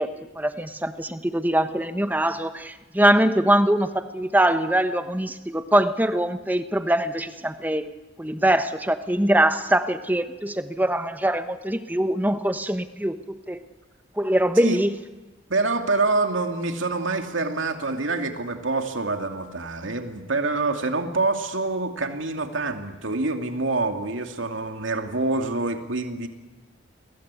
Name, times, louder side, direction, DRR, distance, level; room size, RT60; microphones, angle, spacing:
voice 1, 0.0-7.9 8.2-13.6 14.2-14.9, right 1 dB, 10° right, 10 dB, 1.1 m, -23 dB
voice 2, 15.5-26.3, right 3 dB, 85° right, 5 dB, 2.6 m, -26 dB
29.5 x 22.5 x 8.4 m, 1.2 s
head